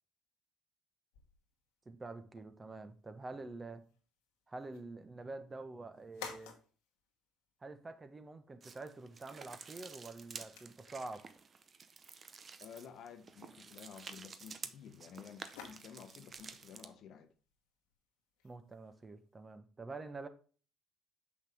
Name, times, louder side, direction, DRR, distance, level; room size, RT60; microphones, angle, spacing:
sound 1, 1.1-19.6, left 7 dB, 85° left, 1.2 m, -58 dB
voice 1, 1.9-3.8 4.5-6.5 7.6-11.3 18.4-20.3, right 3 dB, 25° right, 1.1 m, -47 dB
sound 2, 8.6-16.9, right 5 dB, 40° right, 0.7 m, -51 dB
voice 2, 12.6-17.3, left 7 dB, 65° left, 1.0 m, -52 dB
6.1 x 5.7 x 3.5 m
hypercardioid pair, 65°, 0 cm